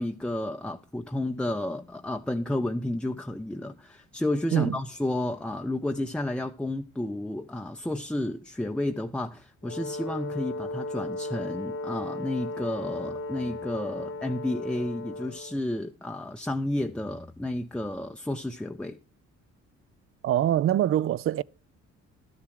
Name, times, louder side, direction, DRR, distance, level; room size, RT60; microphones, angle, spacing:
voice 1, 0.0-19.0, left 1 dB, 5° left, 0.5 m, -31 dB
Brass instrument, 9.6-15.6, left 2 dB, 50° left, 1.1 m, -36 dB
voice 2, 20.2-21.4, right 11 dB, 45° right, 0.4 m, -24 dB
12.0 x 7.0 x 4.8 m
cardioid pair, 90°, 30 cm